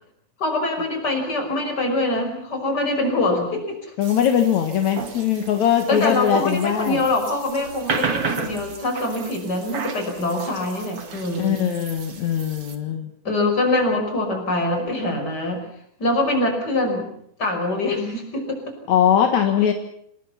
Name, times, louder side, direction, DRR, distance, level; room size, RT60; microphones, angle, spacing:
voice 1, 0.4-3.9 5.9-11.6 13.2-15.6 16.0-17.1 17.4-18.8, left 2 dB, 30° left, 4 dB, 6.2 m, -24 dB
voice 2, 4.0-7.0 11.4-13.1 18.9-19.7, left 9 dB, 70° left, 5 dB, 2.9 m, -20 dB
sound 1, 4.0-12.8, right 5 dB, 50° right, 3.0 m, -33 dB
27.5 x 20.0 x 5.8 m, 0.67 s
omnidirectional pair, 3.4 m